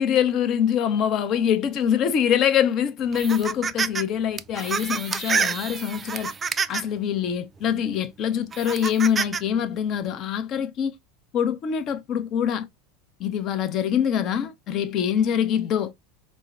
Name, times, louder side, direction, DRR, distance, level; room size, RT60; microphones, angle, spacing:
voice 1, 0.0-6.3 6.7-10.9 11.3-12.7 13.2-15.9, left 8 dB, 45° left, 0.6 m, -24 dB
sound 1, 3.1-4.0 4.4-7.0 7.6-7.7 8.5-9.4, right 5 dB, 25° right, 0.3 m, -27 dB
4.5 x 2.1 x 2.4 m
figure-of-eight pair, 80°, 0 cm